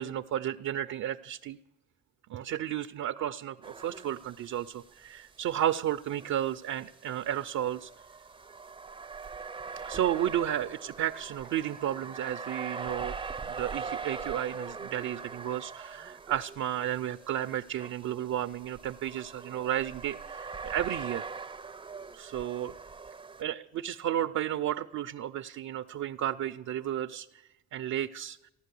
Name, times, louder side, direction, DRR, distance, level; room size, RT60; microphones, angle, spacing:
voice 1, 0.0-1.6 2.3-7.9 9.8-13.2 13.5-21.3 22.1-22.7 23.4-27.3 27.7-28.4, right 11 dB, 65° right, 9 dB, 0.6 m, -33 dB
sound 1, 3.6-4.7 5.0-5.1 6.2-23.4, right 5 dB, 15° right, 0.5 m, -42 dB
15.5 x 11.0 x 8.3 m, 0.96 s
cardioid pair, 90°, 30 cm